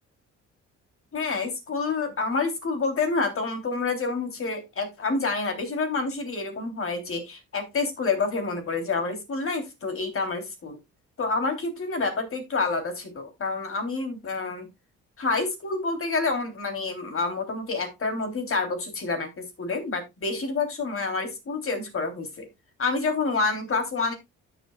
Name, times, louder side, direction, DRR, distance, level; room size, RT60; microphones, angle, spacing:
voice 1, 1.1-10.8 11.2-14.7 15.2-22.5 22.8-24.1, left 3 dB, 45° left, 3.4 m, -28 dB
12.5 x 7.4 x 2.4 m
cardioid pair, 90°, 30 cm